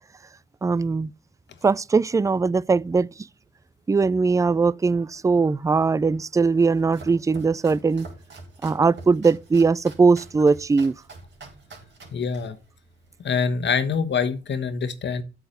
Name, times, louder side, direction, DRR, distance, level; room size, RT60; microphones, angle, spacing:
voice 1, 0.6-1.1 1.6-3.1 3.9-8.1 8.6-11.0, right 4 dB, 15° right, 0.4 m, -20 dB
Domestic sounds home sounds, 6.5-13.5, right 3 dB, 60° right, 4.1 m, -46 dB
voice 2, 12.1-12.6 13.2-15.2, left 6 dB, 60° left, 1.3 m, -25 dB
8.5 x 4.7 x 6.6 m
supercardioid pair, 50°, 21 cm